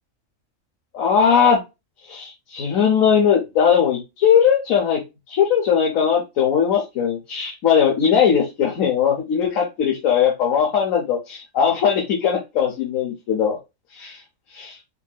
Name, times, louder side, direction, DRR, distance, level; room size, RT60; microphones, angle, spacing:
voice 1, 0.9-1.6 2.1-5.0 5.3-13.6 13.9-14.2 14.5-14.8, left 7 dB, 80° left, -1 dB, 1.3 m, -19 dB
4.5 x 2.7 x 2.3 m, 0.24 s
omnidirectional pair, 1.4 m